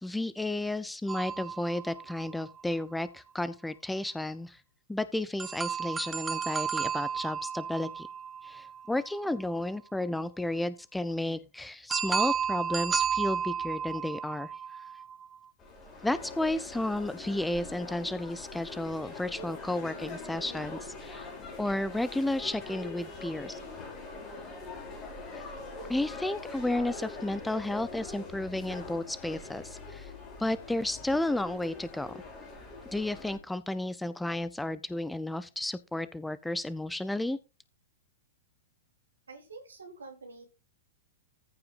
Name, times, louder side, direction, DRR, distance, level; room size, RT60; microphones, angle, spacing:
voice 1, 0.0-4.6 4.9-8.1 8.4-14.8 16.0-21.3 21.6-23.6 25.9-30.1 30.4-32.1 32.9-37.4, left 1 dB, 5° left, 16 dB, 0.6 m, -32 dB
sound 1, 1.1-2.8 5.4-9.3 11.9-15.4, right 7 dB, 15° right, 1.2 m, -33 dB
sound 2, 15.6-33.4, left 3 dB, 20° left, 4.2 m, -43 dB
voice 2, 39.3-40.5, right 3 dB, 70° right, 4 dB, 3.7 m, -47 dB
14.5 x 5.6 x 3.9 m, 0.29 s
figure-of-eight pair, 105°, 0 cm